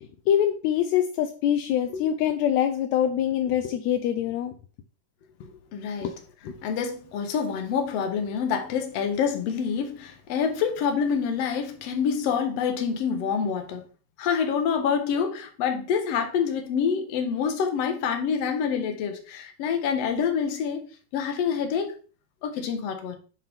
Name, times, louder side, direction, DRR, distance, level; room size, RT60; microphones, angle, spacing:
voice 1, 0.3-4.5 6.0-6.1, left 10 dB, 80° left, 1.6 m, -24 dB
voice 2, 5.4-6.1 6.5-13.8 14.2-20.8 21.1-21.9 22.4-23.2, left 6 dB, 65° left, 1.8 m, -27 dB
8.7 x 3.7 x 3.4 m
omnidirectional pair, 3.6 m